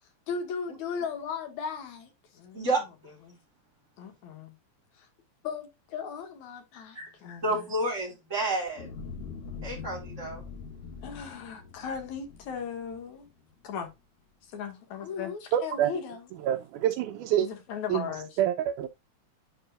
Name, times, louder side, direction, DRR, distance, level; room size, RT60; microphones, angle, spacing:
voice 1, 0.3-2.7 3.2-3.4 4.0-4.6 5.0-5.1 5.4-7.6 11.0-13.3 13.6-13.9 14.5-16.3 17.4-18.4, left 6 dB, 70° left, 3.1 m, -37 dB
voice 2, 7.4-8.9 9.6-10.4, right 2 dB, 20° right, 4.9 m, -30 dB
sound 1, 8.8-13.3 13.8-13.9, left 5 dB, 55° left, 2.6 m, -43 dB
voice 3, 15.5-15.9 16.4-17.5 17.9-18.1 18.4-18.9, right 11 dB, 85° right, 2.2 m, -26 dB
10.0 x 5.5 x 2.4 m
omnidirectional pair, 3.5 m